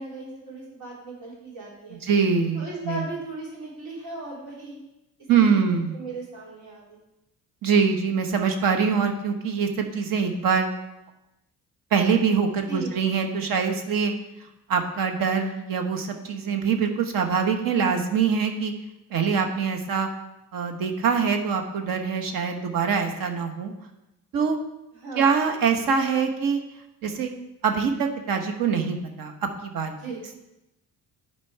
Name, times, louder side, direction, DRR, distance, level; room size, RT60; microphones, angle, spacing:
voice 1, 0.0-2.0 2.5-4.8 5.5-5.6 5.9-7.0 12.7-12.9 25.0-25.3 30.0-30.2, right 2 dB, 85° right, -4 dB, 3.4 m, -37 dB
voice 2, 2.0-3.0 5.3-6.0 7.6-10.7 11.9-14.1 14.7-18.7 19.1-20.1 20.5-23.7 24.3-24.6 25.1-26.6 27.0-27.3 27.6-29.9, right 6 dB, 65° right, 5 dB, 1.1 m, -24 dB
10.5 x 4.5 x 4.6 m, 0.92 s
cardioid pair, 130°, 36 cm